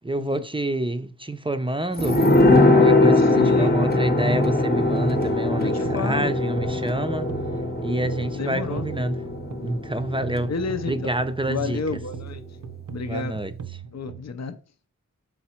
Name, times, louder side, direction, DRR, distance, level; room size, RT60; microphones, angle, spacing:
voice 1, 0.0-2.2 2.7-7.3 7.8-9.2 9.6-10.5 10.8-11.8 13.1-13.5, right 1 dB, 15° right, 0.5 m, -27 dB
sound 1, 2.0-11.3 11.6-11.7, left 2 dB, 30° left, 0.9 m, -21 dB
voice 2, 3.2-3.7 5.6-6.3 8.3-8.8 10.5-11.2 11.5-12.4 12.9-13.4 13.9-14.6, left 5 dB, 60° left, 0.5 m, -31 dB
sound 2, 3.2-14.2, right 8 dB, 75° right, 0.6 m, -40 dB
5.8 x 4.0 x 4.3 m
wide cardioid pair, 60°, 31 cm